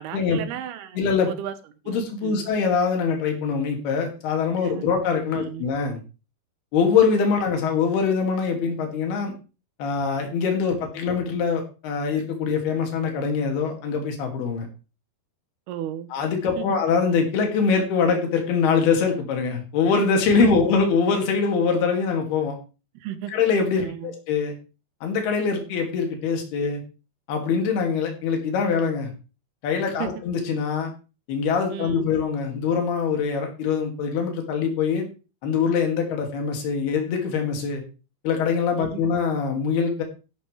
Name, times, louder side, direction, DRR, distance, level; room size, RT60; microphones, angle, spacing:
voice 1, 0.0-1.5 1.8-2.4 4.6-4.9 5.3-5.7 15.7-16.1 16.6-16.8 20.4-20.8 22.9-23.3 23.8-24.2 30.0-30.1 31.7-32.1 38.8-39.1, right 11 dB, 80° right, 3.0 m, -35 dB
voice 2, 1.0-1.3 1.9-6.0 6.7-9.3 9.8-14.7 16.1-22.6 23.3-24.5 25.0-26.8 27.3-29.1 29.6-30.9 31.3-35.1 35.4-37.8 38.2-40.0, left 5 dB, 75° left, 4.3 m, -23 dB
12.5 x 11.5 x 3.3 m
omnidirectional pair, 4.6 m